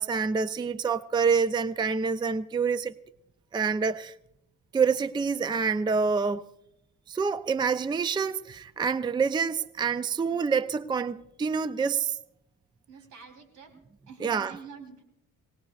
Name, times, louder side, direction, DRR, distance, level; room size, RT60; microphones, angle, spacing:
voice 1, 0.0-2.9 3.5-4.1 4.7-6.5 7.1-12.2 14.2-14.6, right 5 dB, 15° right, 0.4 m, -27 dB
voice 2, 12.9-13.7 14.1-15.0, right 5 dB, 80° right, 3.6 m, -46 dB
24.5 x 18.5 x 2.4 m
cardioid pair, 90°, 30 cm